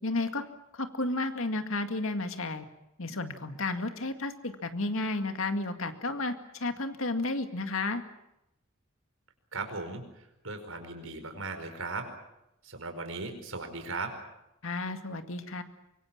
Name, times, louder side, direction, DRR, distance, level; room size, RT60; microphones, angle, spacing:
voice 1, 0.0-0.4 0.7-2.7 3.0-8.0 14.6-15.6, left 2 dB, 80° left, 7 dB, 2.1 m, -32 dB
voice 2, 9.5-12.1 12.6-14.2, right 3 dB, 80° right, 6 dB, 4.9 m, -38 dB
24.5 x 23.5 x 7.4 m, 0.86 s
head